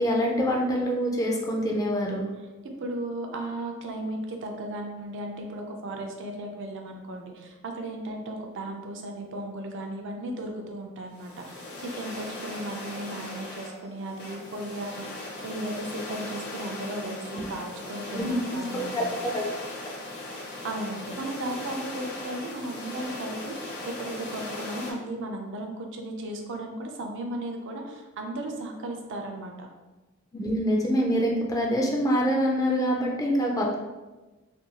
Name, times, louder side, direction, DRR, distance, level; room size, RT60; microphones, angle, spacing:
voice 1, 0.0-2.3 17.3-17.4 18.1-18.6 18.9-19.4 30.3-33.7, equal, 15° left, -1 dB, 0.3 m, -25 dB
voice 2, 2.8-19.1 20.4-29.7, right 1 dB, 60° right, 2 dB, 0.4 m, -36 dB
sound 1, 11.1-24.9, left 2 dB, 50° left, 0.6 m, -38 dB
2.6 x 2.2 x 2.8 m, 1.1 s
head